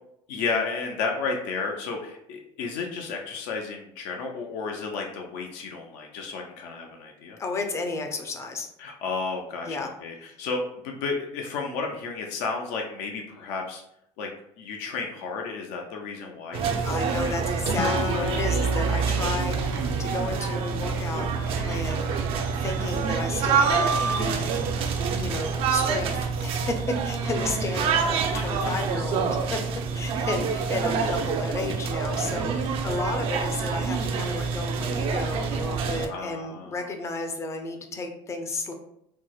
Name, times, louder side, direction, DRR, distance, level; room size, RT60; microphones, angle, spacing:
voice 1, 0.3-7.4 8.8-13.8 14.2-14.3 14.6-17.2 21.5-21.7 28.3-28.7 35.8-36.8, left 4 dB, 90° left, 1 dB, 0.5 m, -32 dB
voice 2, 7.4-8.7 9.7-9.9 16.8-21.3 21.6-22.1 22.6-24.5 25.1-26.8 27.0-29.6 29.9-38.7, left 3 dB, 25° left, 5 dB, 0.4 m, -33 dB
sound 1, 16.5-36.1, right 5 dB, 50° right, 0.4 m, -27 dB
Acoustic guitar, 17.8-21.2, left 4 dB, 55° left, 1.0 m, -34 dB
sound 2, 18.1-26.0, right 3 dB, 80° right, 0.8 m, -38 dB
4.3 x 2.0 x 2.3 m, 0.76 s
cardioid pair, 155°, 12 cm